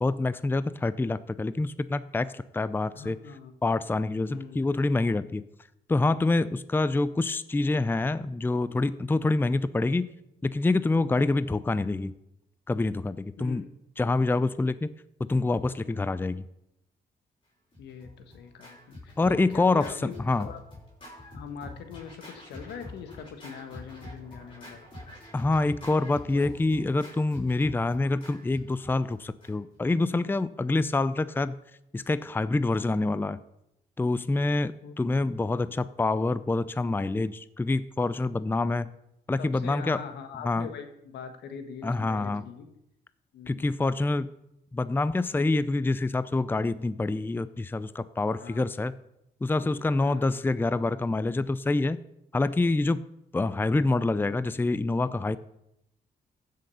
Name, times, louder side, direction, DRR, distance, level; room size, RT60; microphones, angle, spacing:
voice 1, 0.0-3.2 3.6-5.4 5.9-10.1 10.4-12.1 12.7-13.6 14.0-14.9 15.2-16.4 19.2-20.5 25.3-31.5 31.9-33.4 34.0-38.9 39.3-40.0 40.4-40.7 41.8-42.5 43.5-44.3 44.7-48.9 49.4-52.0 52.3-53.0 53.3-55.4, left 2 dB, 10° left, 15 dB, 0.5 m, -26 dB
voice 2, 2.9-3.5 4.3-4.6 13.4-13.7 17.8-20.6 21.3-24.8 26.3-26.6 34.8-34.9 39.4-42.7 43.3-43.7 48.4-48.7 50.0-50.4, left 7 dB, 85° left, 7 dB, 1.5 m, -42 dB
Scratching (performance technique), 17.7-29.8, left 2 dB, 30° left, 5.4 m, -46 dB
15.5 x 6.6 x 5.6 m, 0.83 s
cardioid pair, 75°, 17 cm